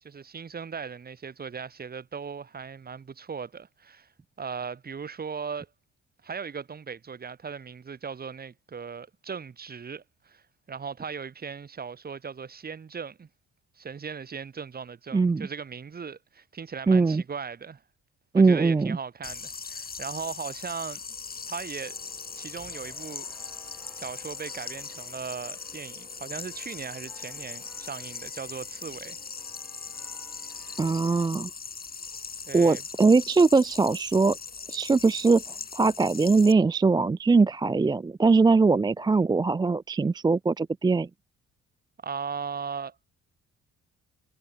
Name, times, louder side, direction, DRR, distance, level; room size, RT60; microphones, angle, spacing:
voice 1, 0.0-4.1 4.4-5.7 6.2-13.3 13.8-17.8 18.3-21.0 21.5-22.0 22.3-23.3 23.7-29.2 32.5-32.8 42.0-43.0, right 6 dB, 30° right, 1.1 m, -38 dB
voice 2, 15.1-15.5 16.9-17.2 18.3-19.0 30.8-31.5 32.5-34.4 34.7-41.1, right 4 dB, 15° right, 0.4 m, -21 dB
sound 1, 19.2-36.5, left 5 dB, 30° left, 1.7 m, -40 dB
sound 2, 21.8-31.3, left 1 dB, 5° left, 7.9 m, -56 dB
cardioid pair, 90°, 30 cm